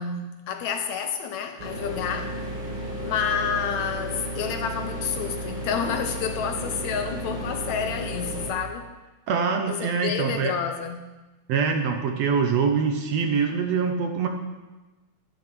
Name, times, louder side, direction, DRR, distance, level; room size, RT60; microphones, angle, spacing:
voice 1, 0.0-2.4 3.0-9.0 9.7-11.1, left 7 dB, 75° left, 1.9 m, -29 dB
sound 1, 1.6-8.5, right 1 dB, 40° right, 3.4 m, -33 dB
voice 2, 9.3-10.5 11.5-14.3, right 5 dB, 65° right, 1.9 m, -24 dB
12.0 x 10.5 x 6.2 m
omnidirectional pair, 3.6 m